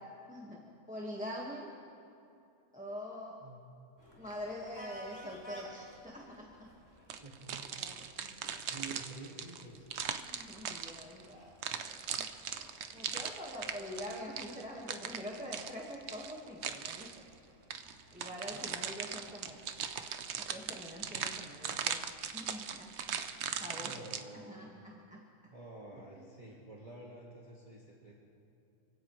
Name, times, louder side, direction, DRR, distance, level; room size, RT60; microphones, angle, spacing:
voice 1, 0.3-0.6 0.9-1.7 2.7-3.4 4.2-6.7 7.8-8.0 10.2-17.1 18.1-19.6 20.5-22.0 22.3-22.9 23.6-24.1 24.5-25.2, equal, 5° right, -3 dB, 1.5 m, -45 dB
sound 1, 4.0-23.6, equal, 10° left, 2.6 m, -58 dB
sound 2, 7.1-11.3 11.6-17.2 17.7-24.2, right 7 dB, 55° right, 0.9 m, -39 dB
voice 2, 7.2-7.7 8.2-9.9 18.5-18.7 23.8-24.8 25.5-28.1, right 2 dB, 25° right, -5 dB, 1.8 m, -50 dB
27.5 x 16.5 x 3.2 m, 2.6 s
omnidirectional pair, 1.5 m